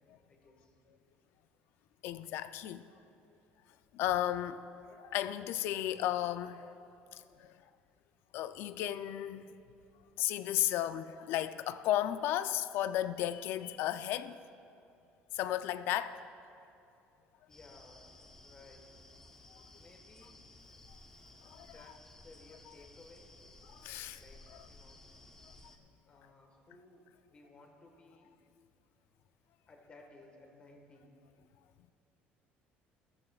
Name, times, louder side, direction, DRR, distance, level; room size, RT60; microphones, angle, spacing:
voice 1, 0.3-0.8 17.5-18.1 18.4-18.9 19.8-20.4 21.6-23.3 24.1-25.0 26.1-27.0 27.3-28.4 29.7-31.1, left 2 dB, 30° left, 1.4 m, -58 dB
voice 2, 2.0-2.8 3.9-4.6 5.0-6.7 7.4-7.5 8.3-9.5 10.2-14.3 15.3-16.2 19.5-19.6 21.5-21.7 23.8-24.2, left 12 dB, 70° left, 0.4 m, -34 dB
sound 1, 17.5-25.8, left 2 dB, 15° left, 0.8 m, -57 dB
15.0 x 14.0 x 2.4 m
cardioid pair, 150°, 4 cm